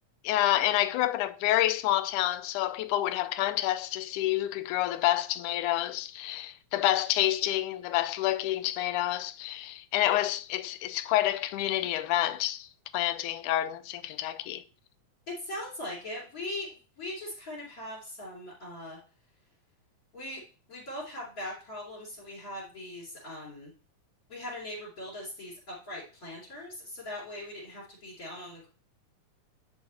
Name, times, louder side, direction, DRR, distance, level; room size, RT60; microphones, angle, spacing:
voice 1, 0.2-12.7 12.9-14.6, left 14 dB, 85° left, 2.1 m, -28 dB
voice 2, 15.4-19.0 20.1-20.4 20.7-23.7 24.3-28.7, left 1 dB, 30° left, 4.1 m, -40 dB
10.5 x 6.0 x 4.2 m
omnidirectional pair, 3.6 m